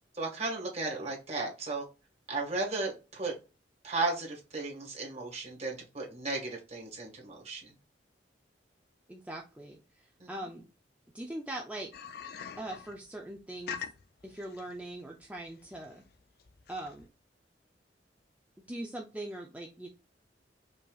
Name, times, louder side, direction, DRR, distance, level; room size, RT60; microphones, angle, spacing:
voice 1, 0.1-1.8 2.3-3.3 3.8-7.7 10.2-10.3, right 3 dB, 35° right, 1.6 m, -35 dB
voice 2, 9.1-10.7 11.1-11.9 12.6-13.9 14.2-16.0 16.7-17.1 18.7-19.9, right 1 dB, 10° right, 0.5 m, -41 dB
sound 1, 11.9-17.1, left 7 dB, 60° left, 0.5 m, -44 dB
5.3 x 2.9 x 2.3 m
head